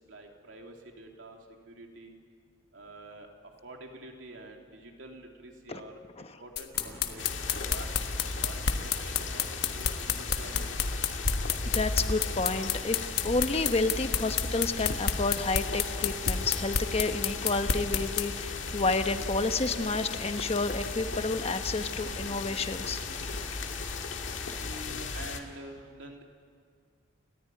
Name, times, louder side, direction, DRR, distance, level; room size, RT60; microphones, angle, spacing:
voice 1, 0.1-1.4 1.7-2.1 2.7-3.3 3.6-10.6 24.6-26.2, right 1 dB, 80° right, 1 dB, 3.1 m, -47 dB
sound 1, 6.6-18.3, left 8 dB, 55° left, 1.4 m, -29 dB
sound 2, 6.7-24.8, left 1 dB, 10° left, 2.6 m, -47 dB
sound 3, 7.2-25.4, left 3 dB, 80° left, 1.9 m, -36 dB
voice 2, 11.7-23.0 24.5-24.6, left 3 dB, 30° left, 8 dB, 1.0 m, -30 dB
30.0 x 14.0 x 9.6 m, 2.1 s
head